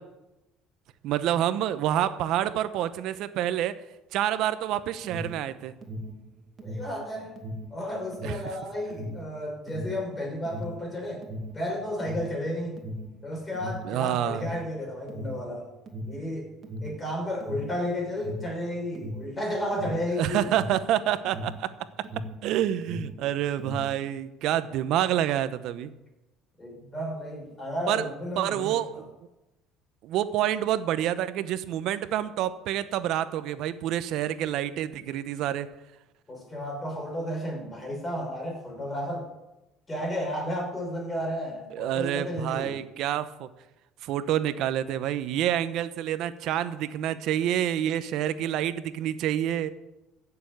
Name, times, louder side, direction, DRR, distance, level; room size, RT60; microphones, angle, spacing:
voice 1, 1.0-3.8 4.1-5.7 8.2-8.4 13.8-14.5 20.2-21.7 22.4-25.9 27.9-28.1 28.4-29.0 30.0-35.7 41.7-43.5 44.0-49.7, right 11 dB, 65° right, 13 dB, 0.9 m, -28 dB
Alarm, 4.7-22.5 22.7-24.0, equal, 35° right, 2.4 m, -38 dB
voice 2, 6.6-7.3 7.7-11.3 11.5-12.8 13.2-15.7 16.1-16.5 16.8-20.4 26.6-29.1 36.3-39.3 39.9-42.8, equal, 20° left, 0 dB, 6.2 m, -33 dB
15.5 x 7.0 x 7.9 m, 0.97 s
cardioid pair, 110°, 0 cm